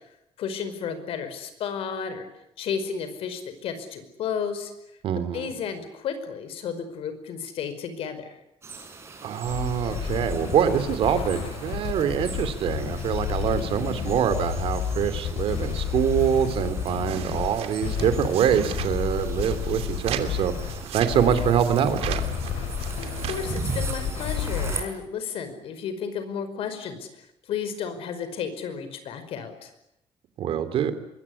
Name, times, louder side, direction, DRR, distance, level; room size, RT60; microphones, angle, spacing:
voice 1, 0.4-2.3 2.6-4.7 5.3-8.4 23.0-29.7, left 7 dB, 70° left, 10 dB, 5.2 m, -33 dB
voice 2, 5.0-5.5 9.2-22.2 30.4-30.9, right 9 dB, 70° right, 11 dB, 3.2 m, -25 dB
sound 1, 8.6-24.8, right 4 dB, 25° right, 5.8 m, -40 dB
sound 2, 9.4-24.8, left 8 dB, 90° left, 5.1 m, -31 dB
sound 3, 15.6-23.7, right 10 dB, 85° right, 2.8 m, -38 dB
24.5 x 22.5 x 9.9 m, 0.82 s
cardioid pair, 170°, 10 cm